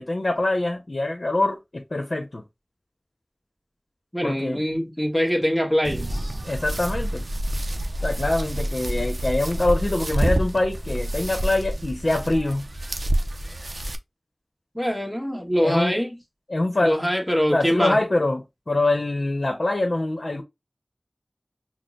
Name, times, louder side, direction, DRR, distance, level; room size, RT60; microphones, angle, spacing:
voice 1, 0.0-2.4 4.2-4.6 6.4-7.2 8.0-12.7 15.6-15.9 16.5-16.9 17.5-18.4 18.7-20.4, left 2 dB, 75° left, 0.8 m, -24 dB
voice 2, 4.1-6.4 14.7-16.2 16.8-18.0, equal, ahead, 1.3 m, -23 dB
sound 1, 5.8-13.9, right 1 dB, 80° right, 0.5 m, -28 dB
6.1 x 2.1 x 2.4 m
wide cardioid pair, 50°, 0 cm